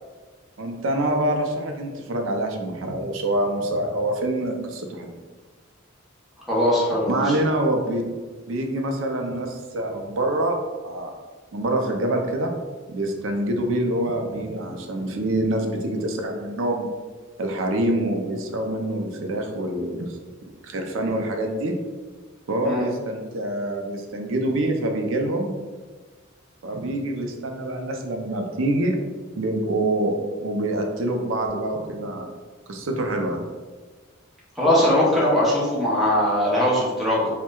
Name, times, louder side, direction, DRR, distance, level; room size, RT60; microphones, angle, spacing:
voice 1, 0.6-5.2 7.1-8.0 8.5-11.1 11.5-12.5 12.9-16.9 17.4-20.2 20.6-21.8 22.5-25.6 26.6-29.0 29.4-30.1 30.4-32.3 32.7-33.4, right 1 dB, 75° right, 3 dB, 0.5 m, -26 dB
voice 2, 6.5-7.2 22.6-22.8 34.6-37.3, left 1 dB, ahead, -8 dB, 0.7 m, -20 dB
4.3 x 2.1 x 2.2 m, 1.4 s
head